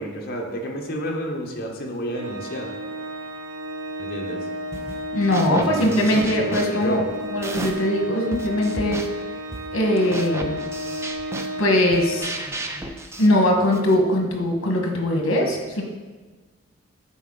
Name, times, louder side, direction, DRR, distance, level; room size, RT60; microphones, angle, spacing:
voice 1, 0.0-2.7 4.0-4.5 5.5-7.1, equal, 45° left, 0 dB, 0.9 m, -30 dB
Organ, 2.1-12.9, equal, 65° right, 0.7 m, -32 dB
sound 1, 4.7-5.0 5.3-8.0 8.3-14.0, right 2 dB, 15° right, 0.3 m, -34 dB
voice 2, 5.1-7.0 7.3-9.0 9.7-10.6 11.6-12.3 13.2-15.8, left 1 dB, 70° left, 1 dB, 1.3 m, -21 dB
10.0 x 4.3 x 3.8 m, 1.3 s
head